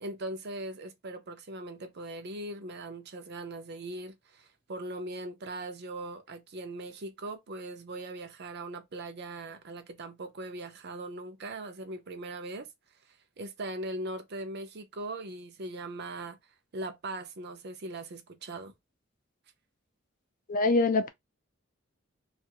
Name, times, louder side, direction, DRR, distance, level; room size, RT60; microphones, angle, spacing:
voice 1, 0.0-12.7 13.1-16.4 16.7-18.7, right 2 dB, 55° right, 0.6 m, -40 dB
voice 2, 20.5-21.1, left 3 dB, 40° left, 0.4 m, -24 dB
2.4 x 2.4 x 2.8 m
head